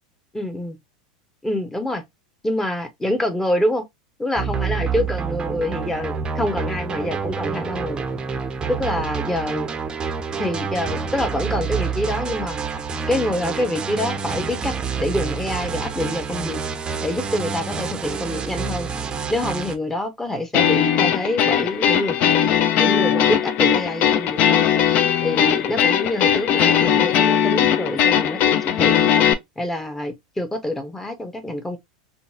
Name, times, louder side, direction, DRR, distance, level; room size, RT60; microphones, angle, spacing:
voice 1, 0.3-0.8 1.4-2.0 2.4-3.8 4.2-8.0 8.7-9.7 10.4-12.6 13.1-16.6 17.0-18.9 19.3-22.3 22.8-24.7 25.2-29.1 29.6-31.8, left 1 dB, 10° left, 0.8 m, -26 dB
sound 1, 4.4-19.8, right 6 dB, 20° right, 0.6 m, -28 dB
sound 2, 20.5-29.3, left 9 dB, 45° left, 0.4 m, -19 dB
3.7 x 2.1 x 2.7 m
hypercardioid pair, 115°, 4 cm